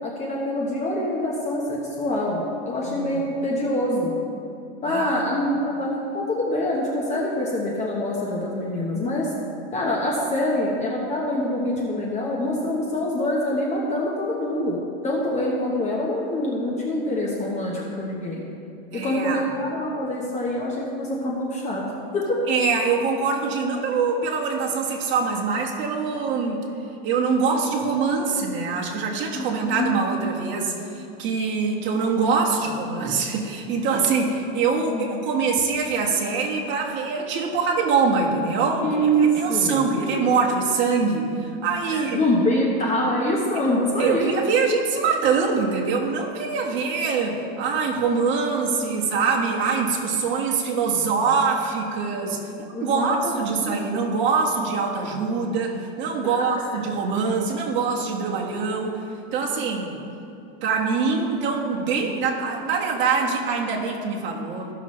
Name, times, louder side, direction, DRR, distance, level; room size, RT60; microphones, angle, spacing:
voice 1, 0.0-4.1 4.8-5.9 6.1-9.3 9.7-14.8 15.0-18.4 18.9-21.8 22.1-22.3 29.3-30.0 34.9-35.1 38.8-39.8 41.9-44.3 52.7-53.8 56.2-56.4, left 1 dB, 20° left, -3 dB, 1.0 m, -25 dB
voice 2, 2.8-3.2 4.8-5.3 18.9-19.5 22.5-26.6 27.0-38.9 39.4-42.2 44.0-59.0 59.3-60.0 60.6-64.7, right 5 dB, 35° right, -1 dB, 1.5 m, -24 dB
15.0 x 6.0 x 3.2 m, 2.6 s
supercardioid pair, 140°, 31 cm